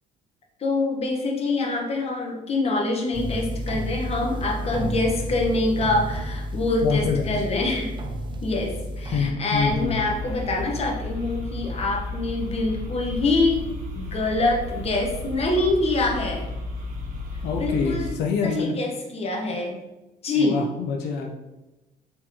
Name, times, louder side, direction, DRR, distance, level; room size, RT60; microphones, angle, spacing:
voice 1, 0.6-7.9 8.4-16.5 17.6-18.1 18.4-19.8 20.2-20.6, left 2 dB, 35° left, 1 dB, 1.0 m, -25 dB
sound 1, 3.1-9.3, right 1 dB, 30° right, 0.4 m, -31 dB
voice 2, 6.8-7.4 9.1-10.0 17.4-18.7 20.4-21.3, left 5 dB, 80° left, 1 dB, 0.6 m, -26 dB
sound 2, 9.5-18.1, left 2 dB, 50° right, 1.3 m, -33 dB
4.2 x 3.8 x 2.8 m, 1.0 s
cardioid pair, 110°, 17 cm